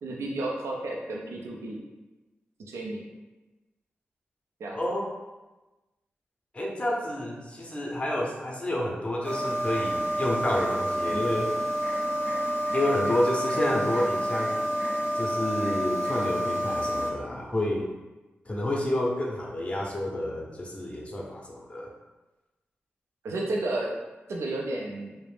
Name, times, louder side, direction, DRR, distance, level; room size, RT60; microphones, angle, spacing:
voice 1, 0.0-1.8 2.7-3.0 4.6-4.8 23.2-23.9 24.3-25.2, right 2 dB, 85° right, -2 dB, 0.4 m, -32 dB
voice 2, 4.7-5.1 6.5-11.6 12.7-14.6 15.1-17.9 18.5-21.9, left 1 dB, 25° left, -2 dB, 0.6 m, -29 dB
sound 1, 9.2-17.1, equal, 45° right, 0.8 m, -28 dB
2.4 x 2.0 x 3.3 m, 1.1 s
cardioid pair, 45°, 4 cm